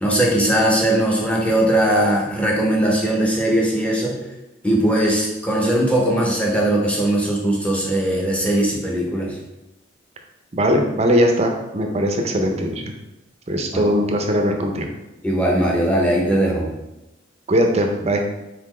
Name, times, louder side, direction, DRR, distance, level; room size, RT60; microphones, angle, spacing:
voice 1, 0.0-4.2 4.6-9.4 13.7-13.9 15.2-16.7, right 1 dB, 5° left, -3 dB, 0.8 m, -19 dB
voice 2, 10.5-12.8 13.5-14.9 17.5-18.2, equal, 35° right, 3 dB, 0.5 m, -20 dB
4.2 x 4.0 x 3.1 m, 0.97 s
head